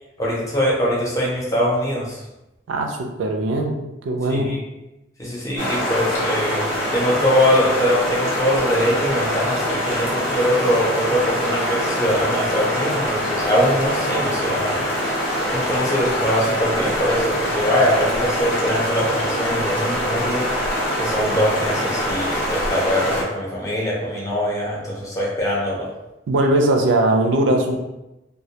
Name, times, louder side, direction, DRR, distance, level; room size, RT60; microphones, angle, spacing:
voice 1, 0.2-2.2 4.3-4.6 5.2-20.4 21.0-25.9, equal, 15° left, -5 dB, 0.6 m, -22 dB
voice 2, 2.7-3.8 4.0-4.5 26.3-27.8, right 1 dB, 85° right, 3 dB, 0.4 m, -19 dB
sound 1, 5.6-23.2, equal, 80° left, 0.8 m, -24 dB
2.1 x 2.1 x 2.7 m, 0.96 s
head